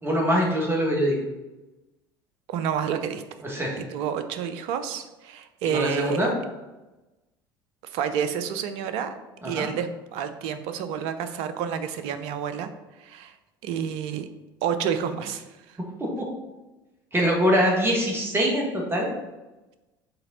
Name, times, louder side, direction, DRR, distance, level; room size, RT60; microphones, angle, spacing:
voice 1, 0.0-1.1 3.4-3.8 5.7-6.3 9.4-9.7 16.2-16.3 17.1-19.1, equal, 20° right, -1 dB, 2.1 m, -23 dB
voice 2, 2.5-3.2 3.8-6.3 7.8-9.1 9.4-12.7 13.0-13.3 13.6-14.3 14.6-15.8, right 8 dB, 60° right, 10 dB, 0.7 m, -29 dB
6.8 x 4.3 x 4.2 m, 1.1 s
hypercardioid pair, 65°, 12 cm